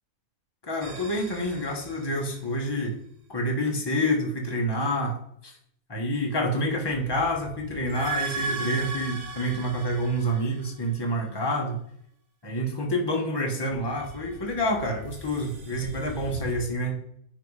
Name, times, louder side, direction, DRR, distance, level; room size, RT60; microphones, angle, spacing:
voice 1, 0.6-3.0 3.3-5.2 5.4-5.5 5.9-11.8 12.4-17.0, equal, 15° left, 0 dB, 1.4 m, -28 dB
sound 1, 0.8-2.8 6.7-11.2 13.7-16.5, right 3 dB, 80° right, 1.8 m, -38 dB
9.7 x 3.7 x 4.9 m, 0.69 s
omnidirectional pair, 1.5 m